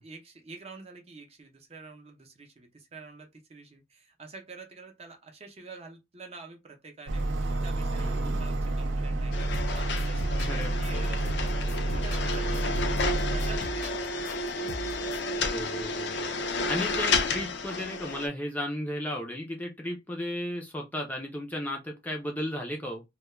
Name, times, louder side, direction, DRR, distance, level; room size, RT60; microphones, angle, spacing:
voice 1, 0.0-14.7 16.6-17.0, right 4 dB, 35° right, 0.6 m, -47 dB
sound 1, 7.1-13.6, right 2 dB, 80° right, 0.5 m, -29 dB
voice 2, 8.0-8.4 10.4-10.7 15.4-16.3 16.7-23.0, left 1 dB, 10° left, 0.4 m, -34 dB
sound 2, 9.3-18.3, left 3 dB, 70° left, 0.5 m, -31 dB
sound 3, 9.4-15.2, equal, 85° left, 0.9 m, -41 dB
2.2 x 2.1 x 3.0 m
head